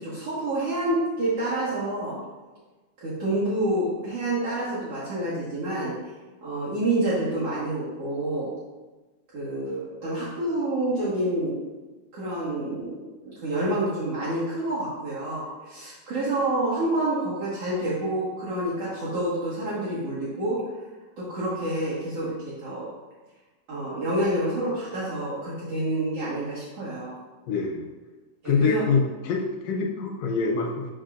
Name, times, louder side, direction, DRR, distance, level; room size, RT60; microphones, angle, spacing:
voice 1, 0.0-2.2 3.0-5.9 6.4-8.5 9.3-11.6 12.1-20.7 21.2-22.9 23.7-27.2 28.4-28.8, right 1 dB, 55° right, -10 dB, 2.4 m, -28 dB
voice 2, 27.5-27.9 28.5-30.9, left 5 dB, 70° left, 0 dB, 1.8 m, -25 dB
12.0 x 4.5 x 2.6 m, 1.2 s
omnidirectional pair, 3.6 m